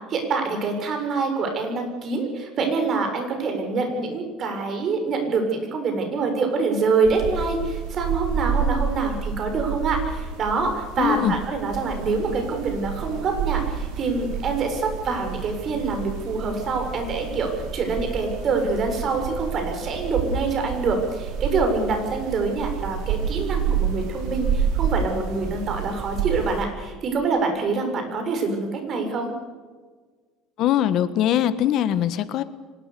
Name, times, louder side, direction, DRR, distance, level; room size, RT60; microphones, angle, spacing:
voice 1, 0.1-29.3, right 4 dB, 40° right, 4 dB, 7.2 m, -25 dB
sound 1, 7.0-26.7, right 6 dB, 70° right, 5.9 m, -29 dB
voice 2, 11.0-11.3 30.6-32.4, left 11 dB, 55° left, 13 dB, 1.4 m, -22 dB
25.0 x 20.0 x 6.9 m, 1.4 s
cardioid pair, 135°, 0 cm